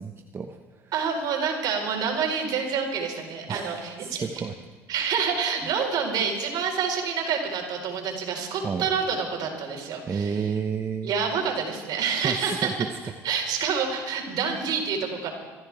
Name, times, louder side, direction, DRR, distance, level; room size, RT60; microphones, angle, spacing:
voice 1, 0.0-0.9 3.5-4.5 5.6-5.7 8.6-8.9 10.1-11.1 12.2-12.9, right 6 dB, 35° right, 5 dB, 0.9 m, -31 dB
voice 2, 0.9-4.4 4.9-10.5 11.0-12.7 13.2-15.3, right 6 dB, 65° right, 0 dB, 4.4 m, -27 dB
25.5 x 14.0 x 3.5 m, 1.3 s
supercardioid pair, 80°, 8 cm